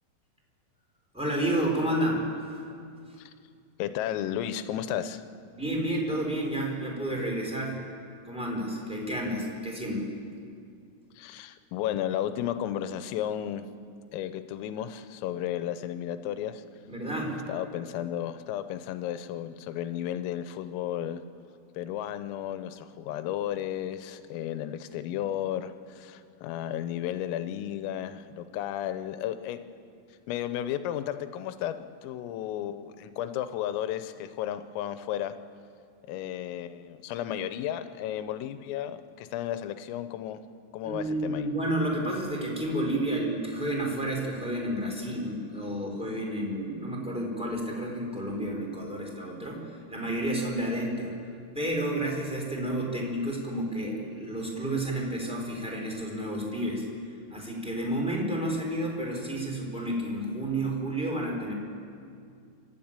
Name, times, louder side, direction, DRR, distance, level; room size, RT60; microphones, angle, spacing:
voice 1, 1.1-2.2 5.5-7.8 8.2-10.1 16.9-17.4 40.8-51.1 51.5-56.8 57.3-61.5, right 1 dB, ahead, -1 dB, 3.3 m, -30 dB
voice 2, 3.8-5.2 11.2-13.7 14.1-16.6 17.5-21.2 21.8-29.6 30.3-35.3 36.1-40.4 40.7-41.5, left 11 dB, 90° left, 11 dB, 3.5 m, -33 dB
29.0 x 12.5 x 8.9 m, 2.4 s
omnidirectional pair, 5.8 m